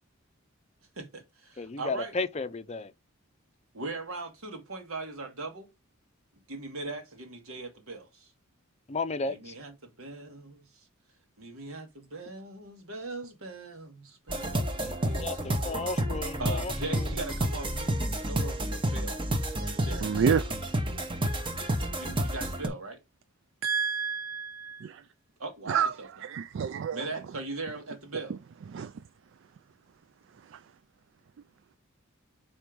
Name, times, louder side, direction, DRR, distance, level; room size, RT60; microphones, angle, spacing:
voice 1, 1.0-2.2 3.7-5.7 6.5-8.3 9.2-10.7 11.4-15.4 16.4-19.3 19.6-20.1 21.9-23.0 25.4-26.3 26.9-28.4, right 3 dB, 80° right, 1.6 m, -40 dB
voice 2, 1.6-2.9 8.9-9.5 14.8-17.1, left 3 dB, 30° left, 0.5 m, -34 dB
sound 1, 14.3-22.7, right 1 dB, 25° right, 0.9 m, -30 dB
voice 3, 20.0-20.4 23.6-25.0 25.7-25.9 26.2-27.0 28.7-28.9, right 7 dB, 60° right, 0.3 m, -28 dB
4.6 x 4.3 x 5.1 m
head